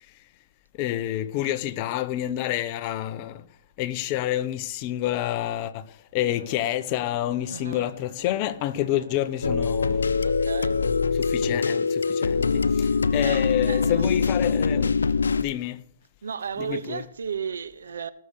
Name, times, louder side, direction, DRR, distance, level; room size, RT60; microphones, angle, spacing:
voice 1, 0.8-3.4 3.8-5.8 6.1-10.0 11.1-12.9 13.1-14.9 15.4-15.8 16.6-17.0, left 13 dB, 35° left, 0.8 m, -28 dB
Bowed string instrument, 6.2-10.3, right 7 dB, 55° right, 2.9 m, -47 dB
voice 2, 7.5-7.9 10.2-10.8 13.1-14.0 16.2-18.1, right 6 dB, 75° right, 1.0 m, -34 dB
sound 1, 9.4-15.4, left 5 dB, 90° left, 0.8 m, -23 dB
19.0 x 6.8 x 6.7 m
hypercardioid pair, 145°, 0 cm